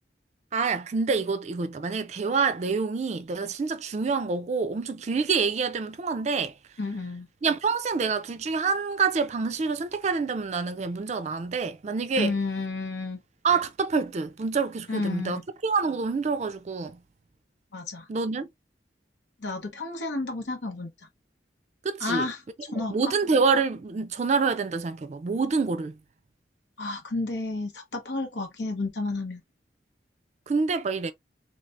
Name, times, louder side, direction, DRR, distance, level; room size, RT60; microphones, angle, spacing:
voice 1, 0.5-6.5 7.4-12.3 13.4-17.0 18.1-18.5 21.8-22.3 22.7-26.0 30.5-31.1, right 4 dB, 40° right, 0.4 m, -27 dB
voice 2, 6.8-7.3 12.2-13.2 14.9-15.4 17.7-18.1 19.4-20.9 22.0-23.0 26.8-29.4, left 3 dB, 90° left, 1.0 m, -31 dB
3.2 x 3.2 x 2.5 m
head